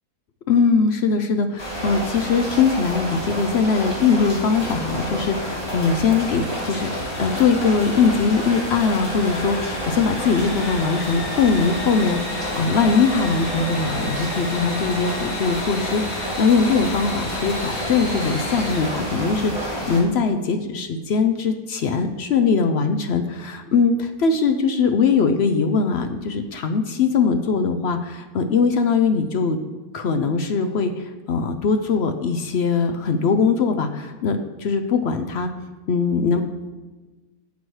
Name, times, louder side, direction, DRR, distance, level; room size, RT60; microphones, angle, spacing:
voice 1, 0.5-6.9 7.2-29.6 29.9-35.5 35.9-36.4, left 5 dB, 65° left, 7 dB, 0.6 m, -21 dB
sound 1, 1.6-20.0, equal, 15° left, 2.9 m, -30 dB
Engine / Sawing, 6.0-19.7, left 2 dB, 85° left, 2.2 m, -34 dB
12.5 x 7.6 x 3.2 m, 1.2 s
omnidirectional pair, 1.7 m